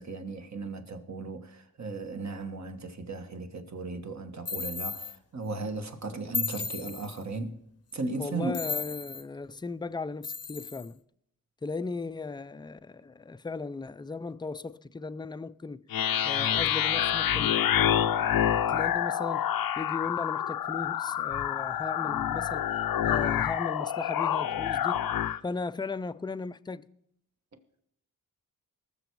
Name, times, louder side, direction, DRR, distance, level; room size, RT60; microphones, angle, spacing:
voice 1, 0.0-7.6 7.9-8.6, right 3 dB, 50° right, 1.4 m, -36 dB
sound 1, 4.4-5.2 6.3-7.2 8.5-9.2 10.2-10.9, left 5 dB, 45° left, 0.7 m, -34 dB
voice 2, 8.2-11.0 11.6-15.8 16.2-19.5 19.8-22.7 23.0-25.0 25.4-26.9, left 4 dB, 15° left, 0.4 m, -37 dB
sound 2, 15.9-25.4, left 10 dB, 80° left, 0.6 m, -27 dB
19.0 x 6.9 x 4.7 m
wide cardioid pair, 80°, 35 cm